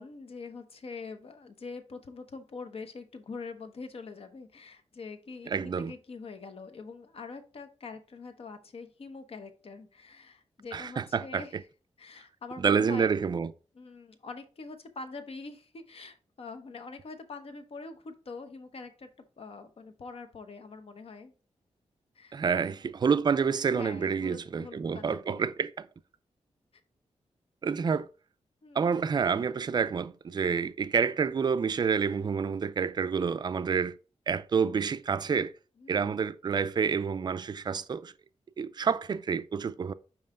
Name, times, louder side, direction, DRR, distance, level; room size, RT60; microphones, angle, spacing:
voice 1, 0.0-11.6 12.0-13.1 13.7-19.1 19.4-21.3 22.1-22.4 23.7-25.5 28.6-28.9 35.8-36.2, left 4 dB, 55° left, 0.8 m, -44 dB
voice 2, 5.5-5.9 10.7-11.4 12.6-13.5 22.3-25.9 27.6-28.1 28.7-34.0 34.3-35.5 35.9-38.1 38.6-39.9, right 6 dB, 40° right, 0.4 m, -28 dB
5.5 x 4.7 x 3.6 m
wide cardioid pair, 110°, 12 cm